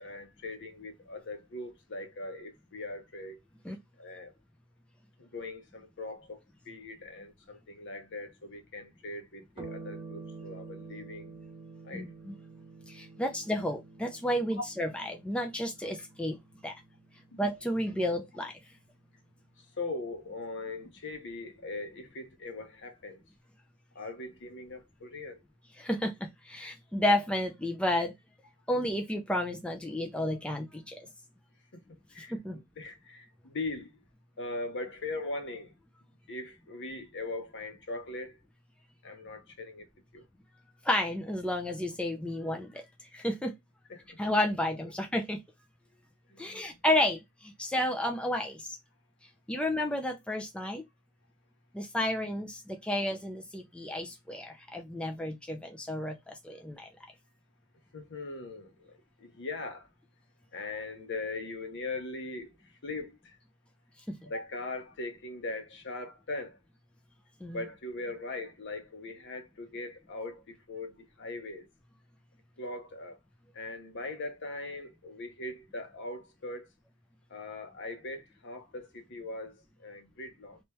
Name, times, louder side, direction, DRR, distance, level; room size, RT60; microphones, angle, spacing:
voice 1, 0.0-3.4 4.0-4.3 5.2-6.4 6.6-11.3 11.8-12.1 14.6-14.7 17.3-17.4 19.8-23.2 23.9-25.4 31.7-32.3 32.8-33.9 34.4-35.7 36.3-38.4 39.0-39.9 40.1-40.3 43.9-44.2 46.3-46.8 57.9-59.9 60.5-63.4 64.2-66.6 67.5-71.7 72.6-73.2 73.5-76.7 77.3-80.6, left 2 dB, 55° left, 0.9 m, -40 dB
sound 1, 9.6-18.4, right 4 dB, 20° right, 1.0 m, -48 dB
voice 2, 11.9-12.3 12.9-16.4 16.6-16.7 17.4-18.5 25.8-28.1 28.7-31.1 32.3-32.6 40.8-43.5 44.2-45.4 46.4-48.8 49.5-50.8 51.7-56.9 64.1-64.2 67.4-67.6, left 1 dB, 5° left, 0.4 m, -31 dB
3.1 x 3.0 x 3.2 m
head